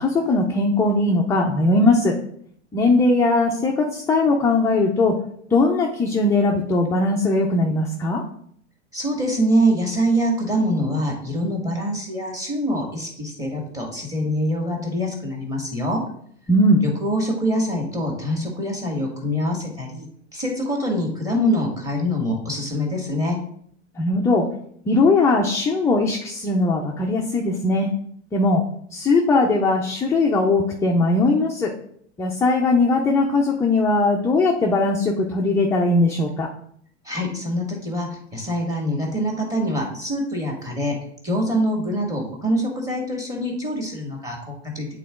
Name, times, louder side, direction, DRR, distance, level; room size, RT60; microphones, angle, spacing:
voice 1, 0.0-2.1 2.7-5.1 5.5-8.2 16.5-16.8 24.0-24.4 24.9-27.9 28.3-28.6 28.9-31.7 32.2-36.5, left 2 dB, 10° left, 0 dB, 0.4 m, -19 dB
voice 2, 8.9-16.0 16.8-20.1 20.3-23.4 37.0-40.9 41.2-44.9, equal, 10° right, 0 dB, 1.7 m, -24 dB
8.3 x 3.8 x 3.6 m, 0.65 s
hypercardioid pair, 115°, 35 cm